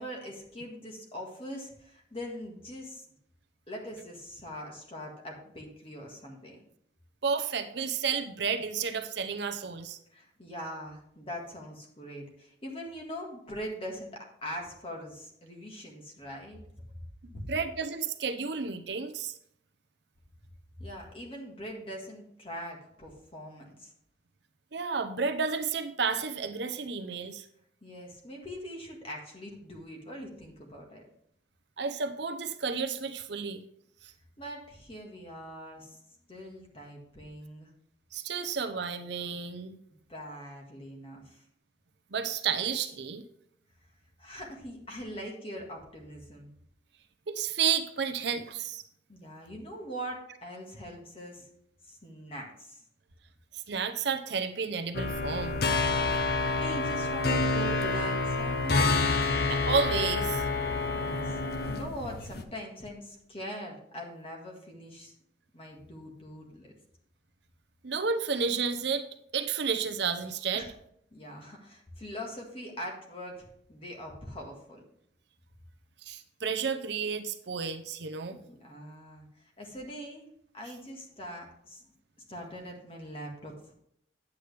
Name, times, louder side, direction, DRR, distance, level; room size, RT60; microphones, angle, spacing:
voice 1, 0.0-3.0 3.7-6.6 10.1-16.6 20.8-23.9 27.8-31.0 34.4-36.0 36.3-37.7 40.1-41.4 44.2-46.5 49.1-51.5 51.9-52.8 56.5-58.8 60.9-61.4 61.7-65.1 65.5-66.7 70.5-70.7 71.1-74.8 78.3-80.3 80.5-81.9 82.3-83.7, equal, 30° left, 0 dB, 1.7 m, -42 dB
voice 2, 7.2-10.0 17.3-19.3 24.7-27.4 31.8-33.6 38.1-39.8 42.1-43.2 47.3-48.8 53.5-55.6 59.5-60.4 67.8-69.0 69.3-70.7 76.0-78.4, right 6 dB, 60° right, 8 dB, 0.7 m, -31 dB
sound 1, 54.9-62.4, left 3 dB, 50° left, 0.7 m, -28 dB
9.3 x 8.3 x 3.4 m, 0.71 s
head